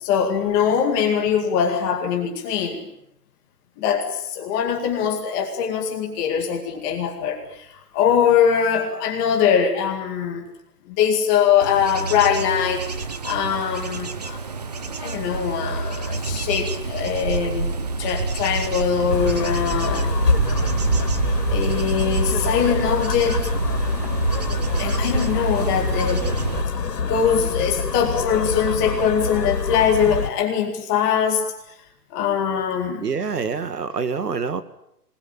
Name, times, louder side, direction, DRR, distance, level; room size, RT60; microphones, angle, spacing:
voice 1, 0.0-2.9 3.8-10.4 10.9-12.9 13.2-14.4 15.0-20.1 21.5-23.5 24.8-26.3 27.0-31.5 32.1-33.1, left 7 dB, 15° left, 2 dB, 2.2 m, -22 dB
Bird / Insect / Wind, 11.6-26.6, right 4 dB, 25° right, 0.9 m, -26 dB
sound 1, 19.1-30.3, left 5 dB, 80° left, 3.7 m, -26 dB
voice 2, 33.0-34.6, right 5 dB, 75° right, 11 dB, 2.4 m, -26 dB
26.5 x 20.5 x 9.1 m, 0.78 s
hypercardioid pair, 170°, 48 cm